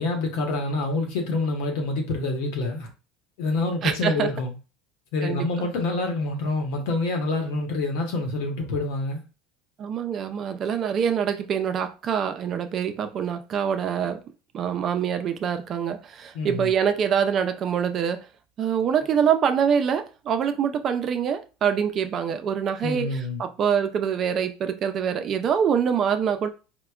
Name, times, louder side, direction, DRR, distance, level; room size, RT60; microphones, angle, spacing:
voice 1, 0.0-2.9 3.4-4.5 5.1-9.2 16.3-16.7 22.8-23.4, left 2 dB, 75° left, 1.0 m, -27 dB
voice 2, 3.8-4.3 5.2-5.7 9.8-14.2 14.5-18.3 18.6-26.5, right 8 dB, 40° right, 0.4 m, -25 dB
4.6 x 2.1 x 2.3 m
supercardioid pair, 130°, 0 cm